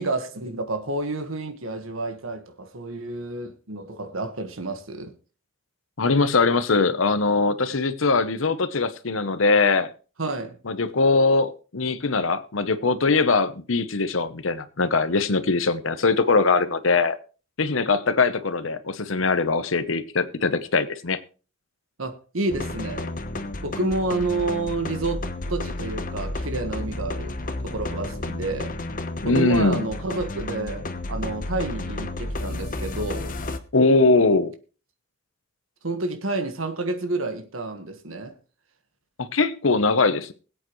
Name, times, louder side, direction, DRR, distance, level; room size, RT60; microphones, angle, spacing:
voice 1, 0.0-5.1 10.2-10.6 22.0-23.1 23.6-25.2 25.5-28.8 29.2-33.3 35.8-38.4, right 2 dB, 90° right, 1.5 m, -29 dB
voice 2, 6.0-9.9 10.7-17.2 17.6-21.2 29.2-29.8 33.7-34.5 39.2-40.3, left 3 dB, 75° left, 0.9 m, -21 dB
sound 1, 22.5-33.6, left 2 dB, 40° left, 1.0 m, -32 dB
21.5 x 8.5 x 3.1 m
head